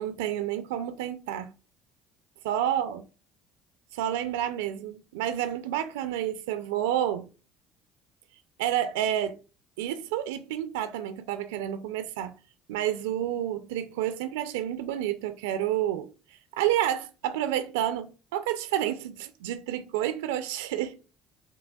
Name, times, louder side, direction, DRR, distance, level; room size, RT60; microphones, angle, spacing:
voice 1, 0.0-1.5 2.4-3.0 3.9-7.3 8.6-9.4 9.8-12.4 12.7-16.1 16.6-21.0, right 11 dB, 85° right, 0.3 m, -29 dB
5.0 x 3.0 x 2.3 m
supercardioid pair, 75°, 0 cm